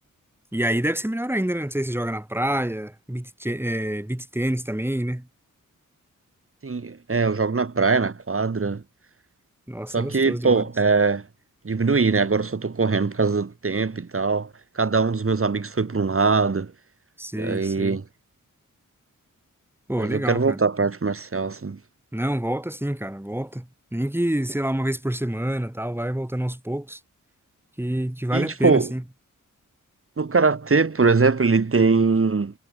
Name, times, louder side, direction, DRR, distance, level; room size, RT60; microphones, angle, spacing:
voice 1, 0.5-5.3 9.7-10.7 17.2-18.0 19.9-20.6 22.1-27.0 27.8-29.0, right 1 dB, 5° right, 3.6 m, -27 dB
voice 2, 6.6-8.8 9.9-11.2 11.6-14.5 14.8-16.7 17.3-18.0 20.0-21.8 28.3-28.9 30.2-32.5, right 4 dB, 40° right, 2.7 m, -22 dB
wide cardioid pair, 80°, 32 cm